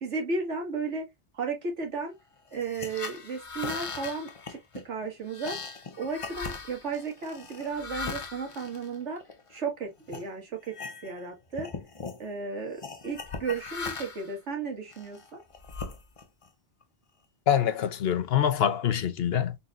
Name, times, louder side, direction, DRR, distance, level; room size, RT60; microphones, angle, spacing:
voice 1, 0.0-1.0 1.3-2.1 2.5-5.6 6.0-9.2 9.5-10.8 11.0-11.7 12.2-15.4, right 4 dB, 85° right, 1.8 m, -34 dB
sound 1, 2.5-9.6 10.1-10.3 10.6-11.3 11.5-12.2 12.8-14.3 14.9-16.5, left 4 dB, 35° left, 0.6 m, -39 dB
voice 2, 17.5-19.5, left 9 dB, 65° left, 0.9 m, -25 dB
4.2 x 3.9 x 2.4 m
omnidirectional pair, 1.2 m